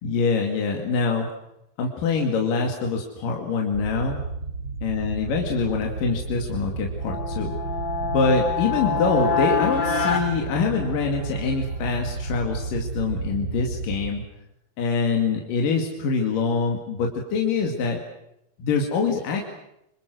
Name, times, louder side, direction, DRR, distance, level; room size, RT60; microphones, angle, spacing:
voice 1, 0.0-1.3 1.8-4.2 4.8-7.6 8.0-14.2 14.8-18.0 18.6-19.5, left 4 dB, 70° left, 1 dB, 4.0 m, -24 dB
sound 1, 3.7-14.1, right 4 dB, 40° right, 3.5 m, -32 dB
sound 2, 7.0-11.4, left 5 dB, 25° left, 3.1 m, -26 dB
26.5 x 26.0 x 6.3 m, 0.82 s
omnidirectional pair, 4.1 m